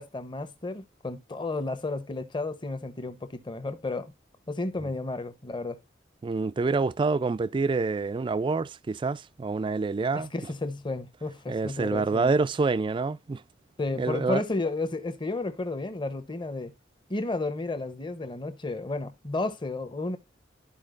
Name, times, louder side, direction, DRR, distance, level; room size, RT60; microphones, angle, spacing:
voice 1, 0.0-4.1 4.5-5.8 10.1-12.3 13.8-16.7 17.1-20.2, left 2 dB, 25° left, 0.8 m, -32 dB
voice 2, 6.2-10.3 11.5-13.4 14.0-14.4, right 4 dB, 25° right, 0.3 m, -27 dB
13.0 x 4.5 x 2.5 m
head